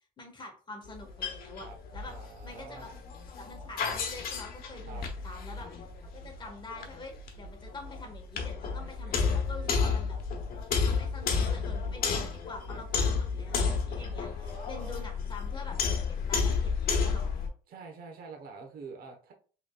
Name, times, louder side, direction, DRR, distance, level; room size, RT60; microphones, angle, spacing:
voice 1, 0.2-2.1 2.4-2.9 3.3-10.2 10.8-15.8 16.1-17.3, left 2 dB, 30° left, 1 dB, 1.4 m, -46 dB
sound 1, 0.9-17.5, left 5 dB, 65° left, 1.0 m, -32 dB
voice 2, 2.1-2.9 4.9-5.0 9.8-9.9 14.0-15.1 17.7-19.3, right 4 dB, 60° right, 2 dB, 1.1 m, -46 dB
5.1 x 3.4 x 2.3 m, 0.39 s
cardioid pair, 110°, 17 cm